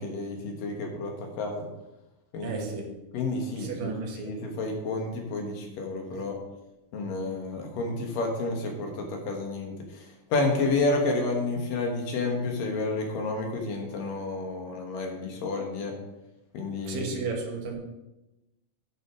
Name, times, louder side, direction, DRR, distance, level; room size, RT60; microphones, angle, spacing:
voice 1, 0.0-1.7 2.3-6.4 6.9-10.0 10.3-15.9 16.5-17.1, left 3 dB, 70° left, 2.9 m, -30 dB
voice 2, 2.4-2.9 3.6-4.3 6.1-6.2 16.9-17.7, right 4 dB, 70° right, 2.9 m, -33 dB
11.0 x 6.2 x 5.0 m
omnidirectional pair, 4.3 m